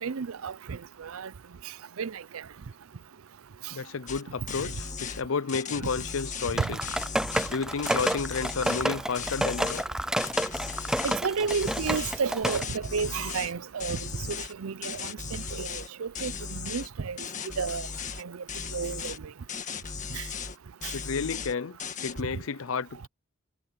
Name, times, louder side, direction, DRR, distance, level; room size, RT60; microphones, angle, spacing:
voice 1, 0.0-1.3 2.0-2.2 6.6-6.7 11.0-14.0 14.3-17.2 17.6-17.8 18.2-18.3 18.7-19.1 20.1-20.2, right 5 dB, 90° right, 0.6 m, -32 dB
voice 2, 3.7-6.9 7.5-9.8 20.9-21.8 22.0-23.1, left 5 dB, 75° left, 0.5 m, -31 dB
sound 1, 3.7-15.9, left 1 dB, 55° left, 5.6 m, -57 dB
sound 2, 4.1-4.2 4.5-5.2 5.5-7.5 7.8-8.9 9.1-9.9 10.2-11.2 11.5-13.5 13.8-14.5 14.8-15.9 16.1-16.9 17.2-18.2 18.5-19.2 19.5-20.6 20.8-21.5 21.8-22.2, left 6 dB, 35° left, 1.8 m, -37 dB
sound 3, 6.6-12.6, right 1 dB, 5° right, 0.4 m, -30 dB
head